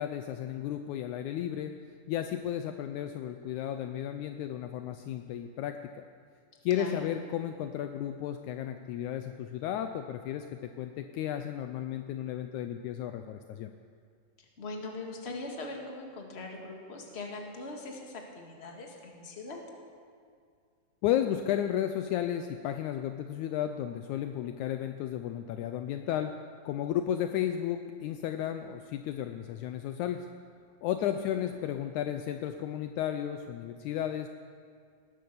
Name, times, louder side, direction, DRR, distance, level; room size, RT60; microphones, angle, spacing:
voice 1, 0.0-1.7 2.1-6.0 6.6-13.7 21.0-26.3 26.7-30.3 30.8-34.3, left 10 dB, 80° left, 7 dB, 1.9 m, -33 dB
voice 2, 6.7-7.1 14.4-19.6 31.0-31.4, left 2 dB, 25° left, 0 dB, 1.8 m, -41 dB
19.0 x 10.5 x 6.9 m, 2.2 s
omnidirectional pair, 3.7 m